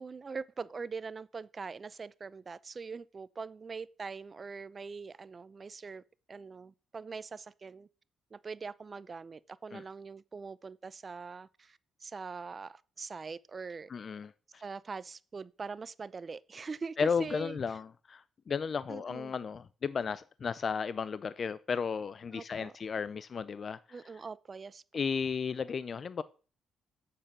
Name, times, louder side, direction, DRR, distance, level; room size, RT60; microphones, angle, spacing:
voice 1, 0.0-6.0 6.3-7.9 8.3-13.9 14.6-17.6 18.9-19.3 22.3-22.7 23.9-24.8, right 5 dB, 35° right, 0.6 m, -43 dB
voice 2, 13.9-14.6 17.0-24.0 24.9-26.2, left 6 dB, 45° left, 0.4 m, -34 dB
7.4 x 6.8 x 6.6 m
cardioid pair, 90°, 0 cm